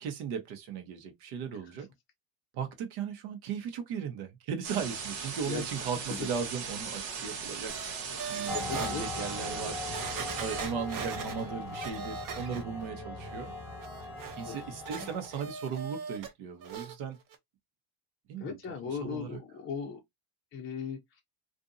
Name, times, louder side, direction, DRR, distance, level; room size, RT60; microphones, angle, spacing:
voice 1, 0.0-1.9 2.5-7.7 8.3-9.8 10.4-13.5 14.4-17.2 18.3-18.6 18.9-19.4, right 7 dB, 65° right, 1.1 m, -37 dB
sound 1, 4.6-10.7, right 6 dB, 85° right, 1.2 m, -38 dB
sound 2, 7.7-8.9 9.5-9.6 9.9-12.9 13.2-16.3 16.6-16.9 17.3-17.4, right 6 dB, 40° right, 0.7 m, -41 dB
voice 2, 8.5-9.0 14.5-14.6 18.4-20.0 20.5-21.2, left 6 dB, 25° left, 0.5 m, -37 dB
sound 3, 8.5-15.5, left 2 dB, 5° right, 1.1 m, -40 dB
2.6 x 2.5 x 2.5 m
cardioid pair, 125°, 50 cm